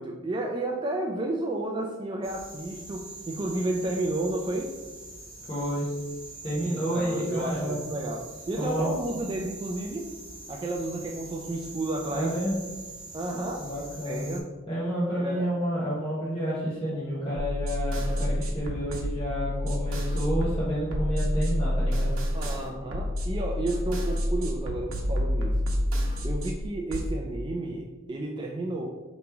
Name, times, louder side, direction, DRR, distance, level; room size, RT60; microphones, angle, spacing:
voice 1, 0.0-4.7 6.6-10.1 10.5-12.3 13.1-13.6 14.0-14.5 15.2-15.5 22.3-25.7 26.2-28.9, right 2 dB, 20° right, 1 dB, 0.3 m, -32 dB
sound 1, 2.2-14.4, right 3 dB, 55° right, 1.1 m, -43 dB
voice 2, 5.5-5.8 6.4-8.0 8.6-8.9 12.1-12.6 13.6-14.2 14.7-22.1, equal, 25° left, -9 dB, 1.0 m, -30 dB
sound 2, 17.4-27.1, equal, 80° right, 0.8 m, -28 dB
5.0 x 3.0 x 3.4 m, 1.2 s
head